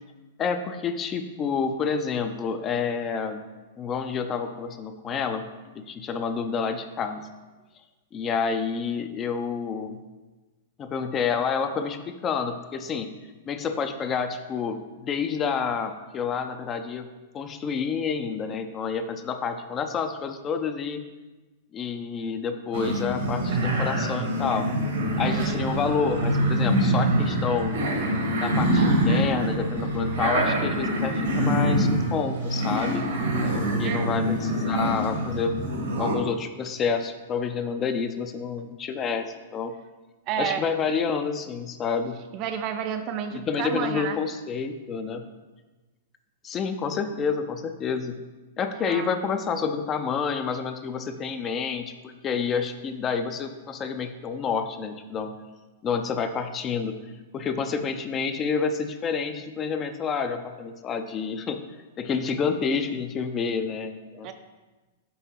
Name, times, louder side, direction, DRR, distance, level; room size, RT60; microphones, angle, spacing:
voice 1, 0.4-3.4 3.8-5.4 5.7-7.2 8.1-10.0 10.8-13.1 13.5-17.1 17.3-21.0 21.7-24.7 25.2-27.8 28.4-33.0 33.5-35.5 36.0-39.7 40.4-42.2 43.3-45.2 46.4-48.2 48.6-55.3 55.8-56.9 57.3-61.6 62.0-64.3, left 6 dB, 30° left, 7 dB, 0.5 m, -29 dB
sound 1, 22.7-36.2, right 1 dB, 75° right, 1.3 m, -25 dB
voice 2, 25.2-25.6 33.8-34.1 40.3-40.6 42.3-44.2 48.7-49.1 64.2-64.3, right 8 dB, 40° right, 8 dB, 0.5 m, -31 dB
5.4 x 3.6 x 5.6 m, 1.2 s
hypercardioid pair, 120°, 0 cm